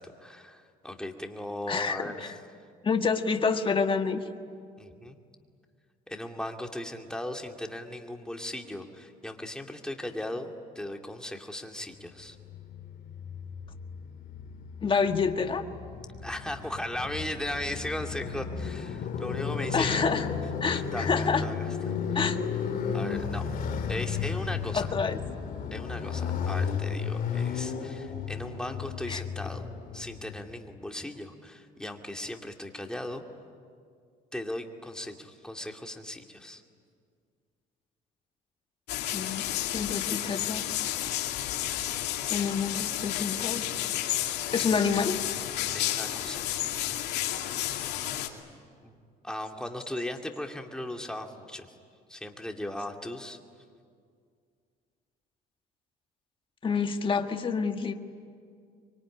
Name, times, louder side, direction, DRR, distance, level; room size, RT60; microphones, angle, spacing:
voice 1, 0.0-2.4 4.8-5.2 6.1-12.4 16.2-20.1 20.7-21.6 22.1-22.2 22.9-23.4 23.9-24.9 25.7-29.7 29.9-33.2 34.3-36.6 45.7-46.5 48.8-49.0 49.2-51.7 52.1-53.4, left 1 dB, 5° left, 3 dB, 2.4 m, -37 dB
voice 2, 1.7-2.3 2.8-4.2 14.8-15.6 19.7-20.3 20.6-21.4 22.1-22.4 24.7-25.2 29.1-29.2 39.1-40.6 42.3-43.6 44.5-45.2 56.6-57.9, left 5 dB, 30° left, 6 dB, 1.7 m, -28 dB
Motorcycle, 12.4-30.5, left 6 dB, 55° left, 2.6 m, -34 dB
sound 1, 38.9-48.3, left 13 dB, 90° left, 2.5 m, -31 dB
24.5 x 24.0 x 10.0 m, 2.2 s
cardioid pair, 110°, 17 cm